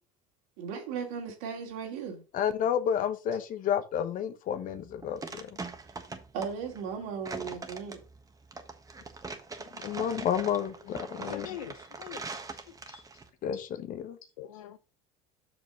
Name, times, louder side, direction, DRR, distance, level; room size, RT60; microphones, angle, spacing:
voice 1, 0.6-2.2 6.3-8.0, right 6 dB, 75° right, 2.4 m, -36 dB
voice 2, 2.3-5.6 9.7-11.5 13.4-13.6 13.9-14.1, left 9 dB, 55° left, 1.1 m, -30 dB
sound 1, 4.7-13.3, right 3 dB, 20° right, 1.3 m, -42 dB
voice 3, 11.2-13.0 14.4-14.8, left 11 dB, 85° left, 0.5 m, -44 dB
6.2 x 5.1 x 5.2 m
hypercardioid pair, 75°, 17 cm